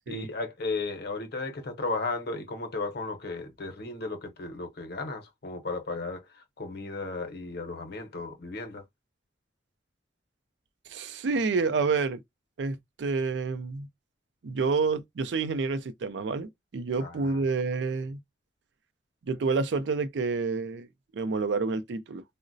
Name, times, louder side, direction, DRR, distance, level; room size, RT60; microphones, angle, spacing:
voice 1, 0.1-6.2 6.6-8.8 17.0-17.4, left 3 dB, 60° left, 0.7 m, -35 dB
voice 2, 10.9-12.2 12.6-13.9 14.4-18.2 19.3-20.9 21.1-22.2, right 4 dB, 70° right, 0.4 m, -28 dB
3.8 x 2.1 x 2.5 m
head